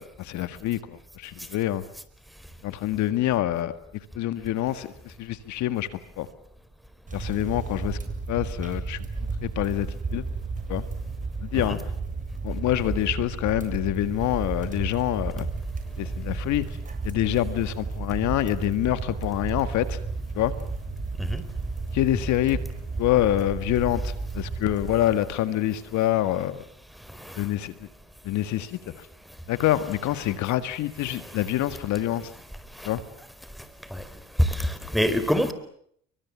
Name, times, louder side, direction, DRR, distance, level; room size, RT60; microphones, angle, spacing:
voice 1, 0.0-1.8 2.6-3.7 4.2-6.3 7.1-8.0 8.3-9.0 9.4-10.2 10.7-10.9 11.4-11.8 12.4-15.5 16.0-16.8 17.0-20.0 20.4-20.5 21.9-22.6 23.0-26.6 27.4-27.7 28.2-29.1 29.5-32.3 32.8-33.0, left 13 dB, 75° left, 12 dB, 1.9 m, -26 dB
sound 1, 7.1-25.4, right 4 dB, 25° right, 7.8 m, -33 dB
voice 2, 27.1-27.5 31.1-31.4 32.7-32.9 33.9-34.1 34.4-35.5, equal, ahead, 12 dB, 4.6 m, -26 dB
29.0 x 24.0 x 7.4 m, 0.68 s
cardioid pair, 90°, 29 cm